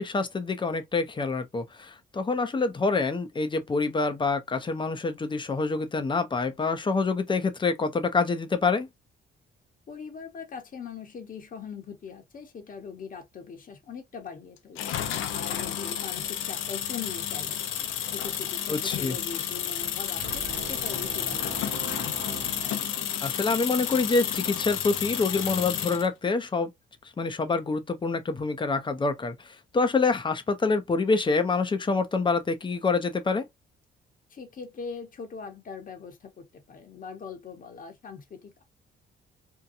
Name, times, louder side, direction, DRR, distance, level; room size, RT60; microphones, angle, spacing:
voice 1, 0.0-8.9 18.7-19.2 23.2-26.7 27.2-33.5, left 4 dB, 25° left, 0.6 m, -26 dB
voice 2, 9.9-14.9 15.3-17.6 18.1-21.8 34.3-38.6, left 6 dB, 45° left, 0.9 m, -41 dB
sound 1, 14.8-26.1, left 10 dB, 90° left, 0.6 m, -31 dB
Angry Boat - Epic Movie Horn, 20.2-23.6, right 9 dB, 50° right, 0.4 m, -42 dB
2.7 x 2.2 x 2.5 m
cardioid pair, 90°, 20 cm